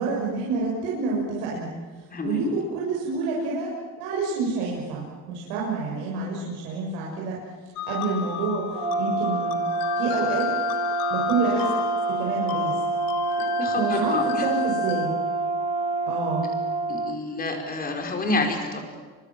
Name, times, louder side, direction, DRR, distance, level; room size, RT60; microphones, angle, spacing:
voice 1, 0.0-7.4 7.9-9.6 10.0-10.5 11.1-11.7 12.1-12.8 13.8-15.2 16.1-16.5, right 4 dB, 85° right, -3 dB, 6.9 m, -28 dB
sound 1, 7.8-15.1, left 12 dB, 60° left, 2.4 m, -33 dB
Brass instrument, 8.7-17.2, right 2 dB, 15° right, 2.9 m, -27 dB
voice 2, 13.4-14.5 16.9-18.9, left 2 dB, 25° left, 3 dB, 5.0 m, -28 dB
29.5 x 25.0 x 7.6 m, 1.5 s
cardioid pair, 150°, 38 cm